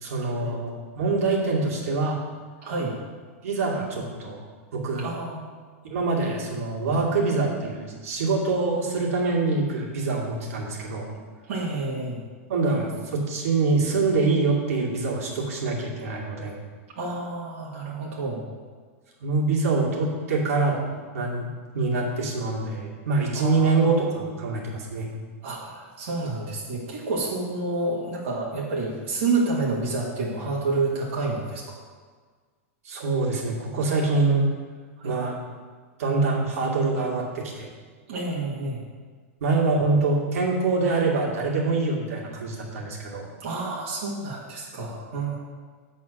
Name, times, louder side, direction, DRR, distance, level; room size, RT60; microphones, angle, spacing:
voice 1, 0.0-2.2 3.4-4.4 4.7-5.1 5.9-11.1 12.5-16.5 19.2-20.8 21.1-21.5 21.7-25.1 32.8-34.5 35.0-35.4 36.0-37.7 39.4-43.3, right 3 dB, 80° right, -3 dB, 2.3 m, -25 dB
voice 2, 2.6-2.9 5.0-5.4 11.5-12.2 17.0-18.4 23.4-23.8 25.4-31.6 35.0-35.2 38.1-38.8 43.4-45.4, right 3 dB, 60° right, -4 dB, 1.7 m, -29 dB
8.3 x 4.3 x 6.3 m, 1.5 s
supercardioid pair, 175°, 8 cm